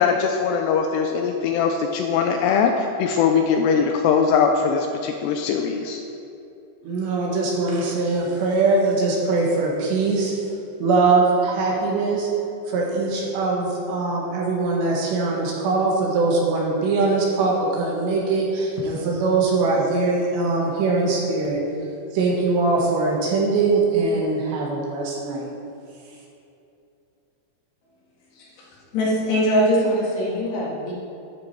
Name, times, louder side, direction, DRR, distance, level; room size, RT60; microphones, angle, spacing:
voice 1, 0.0-6.0, left 6 dB, 85° left, 4 dB, 2.4 m, -21 dB
voice 2, 6.8-10.3 10.8-12.3 12.7-21.6 22.1-25.5, right 3 dB, 70° right, -3 dB, 3.5 m, -22 dB
voice 3, 28.4-28.7 28.9-30.9, equal, 65° left, -5 dB, 4.0 m, -22 dB
11.0 x 10.5 x 4.6 m, 2.7 s
omnidirectional pair, 5.4 m